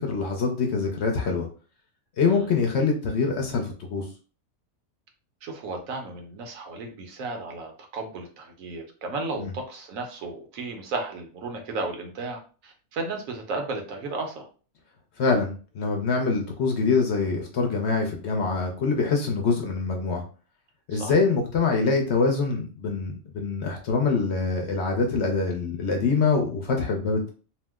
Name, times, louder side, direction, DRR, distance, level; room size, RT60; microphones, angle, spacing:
voice 1, 0.0-1.5 2.2-4.0 9.4-9.5 15.2-20.2 20.9-27.3, left 4 dB, 60° left, 2 dB, 0.8 m, -24 dB
voice 2, 5.4-14.5 20.9-21.1, right 3 dB, 75° right, 3 dB, 1.1 m, -34 dB
2.8 x 2.0 x 3.4 m, 0.38 s
omnidirectional pair, 1.4 m